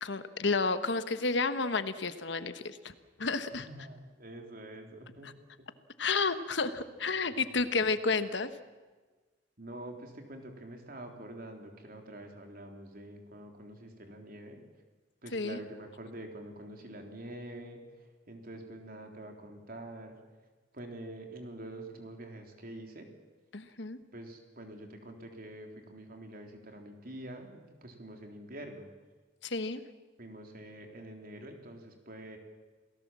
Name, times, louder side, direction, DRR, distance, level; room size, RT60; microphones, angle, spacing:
voice 1, 0.0-2.9 3.2-3.7 6.0-8.5 15.3-15.6 23.5-24.0 29.4-29.8, left 4 dB, 65° left, 11 dB, 1.2 m, -31 dB
voice 2, 3.5-5.4 6.8-7.5 9.6-14.6 15.2-20.2 20.7-23.1 24.1-28.9 30.2-32.4, right 1 dB, 50° right, 3 dB, 3.7 m, -46 dB
28.5 x 18.5 x 7.5 m, 1.3 s
head